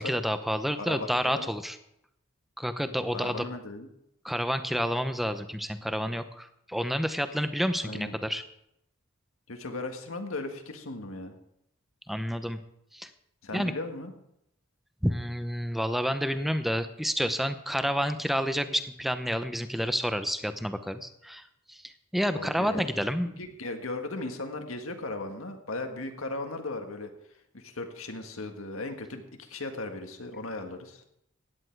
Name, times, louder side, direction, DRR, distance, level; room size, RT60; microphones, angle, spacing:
voice 1, 0.0-1.8 2.6-3.4 4.2-8.4 12.1-12.6 12.9-13.1 13.5-13.7 15.0-21.4 21.7-23.4, equal, ahead, 10 dB, 0.7 m, -29 dB
voice 2, 0.7-1.5 3.1-3.9 7.8-8.2 9.5-11.3 13.4-14.1 22.3-22.9 23.2-27.1 27.5-31.0, left 2 dB, 90° left, 5 dB, 1.7 m, -37 dB
16.0 x 10.0 x 4.6 m, 0.79 s
head